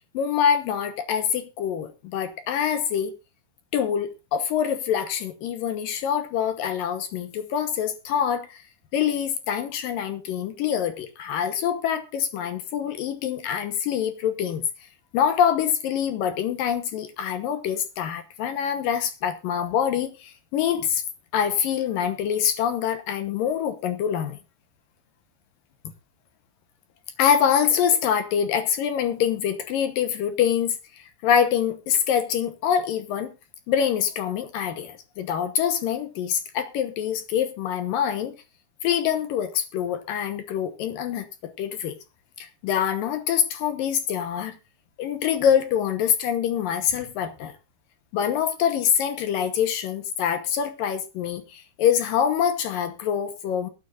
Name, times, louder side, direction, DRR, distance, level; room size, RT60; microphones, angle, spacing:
voice 1, 0.1-3.1 3.7-8.6 8.9-14.6 15.1-21.0 21.3-24.4 27.2-33.3 33.7-38.4 38.8-42.0 42.4-44.6 45.0-47.5 48.1-53.7, left 8 dB, 70° left, 2.3 m, -25 dB
22.5 x 9.8 x 2.5 m
omnidirectional pair, 4.9 m